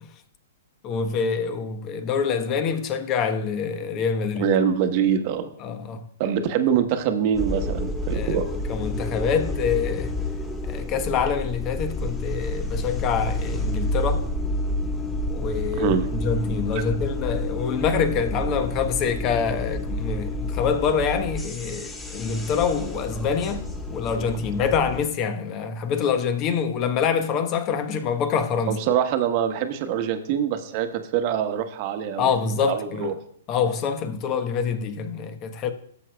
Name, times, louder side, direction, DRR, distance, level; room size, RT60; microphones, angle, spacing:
voice 1, 0.8-4.5 5.6-6.0 8.1-10.1 10.7-14.2 15.3-28.8 32.2-33.1 33.5-35.7, left 6 dB, 35° left, 1.1 m, -26 dB
voice 2, 4.4-5.4 6.2-8.4 15.8-16.0 16.7-16.8 28.7-30.9 31.1-32.3 32.6-33.1, right 8 dB, 45° right, 1.1 m, -24 dB
sound 1, 7.3-25.0, left 1 dB, 10° left, 2.2 m, -29 dB
17.0 x 7.6 x 2.3 m
hypercardioid pair, 125°, 0 cm